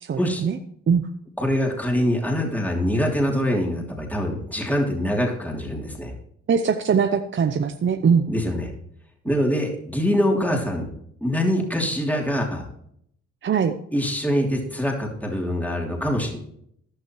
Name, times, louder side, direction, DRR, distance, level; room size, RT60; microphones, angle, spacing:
voice 1, 0.0-0.6 0.9-1.0 6.5-8.3 13.4-13.7, right 6 dB, 40° right, 8 dB, 0.8 m, -21 dB
voice 2, 1.4-6.1 8.3-8.7 9.2-10.9 11.2-12.6 13.9-16.4, equal, 5° left, 0 dB, 3.1 m, -24 dB
14.5 x 11.5 x 3.2 m, 0.70 s
cardioid pair, 90°, 30 cm